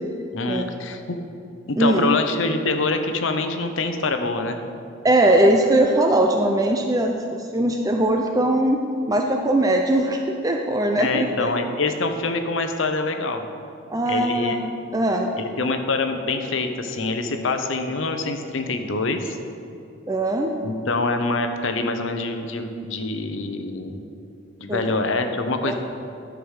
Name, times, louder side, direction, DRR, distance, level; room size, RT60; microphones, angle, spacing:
voice 1, 0.3-1.2 1.7-4.6 11.0-13.4 14.1-14.6 15.4-19.4 20.6-24.0 24.6-25.8, left 3 dB, 70° left, 6 dB, 0.8 m, -25 dB
voice 2, 1.8-2.1 5.0-8.8 9.1-11.5 13.9-15.3 20.1-20.5 24.7-24.8 25.6-25.7, right 1 dB, 15° right, 2 dB, 0.4 m, -20 dB
11.5 x 4.9 x 6.4 m, 2.6 s
head